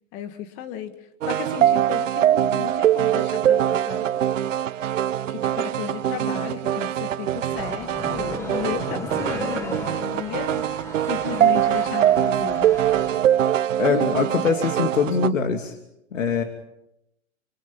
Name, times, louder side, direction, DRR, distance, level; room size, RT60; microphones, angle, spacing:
voice 1, 0.1-0.9 1.2-4.2 5.3-10.6 11.0-12.6 13.9-14.2, left 9 dB, 35° left, 9 dB, 2.1 m, -34 dB
sound 1, 1.2-15.3, right 11 dB, 80° right, 0.8 m, -23 dB
sound 2, 7.5-13.2, left 2 dB, 5° left, 1.2 m, -36 dB
voice 2, 13.8-15.8 16.1-16.4, left 5 dB, 90° left, 5 dB, 2.8 m, -23 dB
27.0 x 26.0 x 5.5 m, 0.82 s
hypercardioid pair, 150°, 37 cm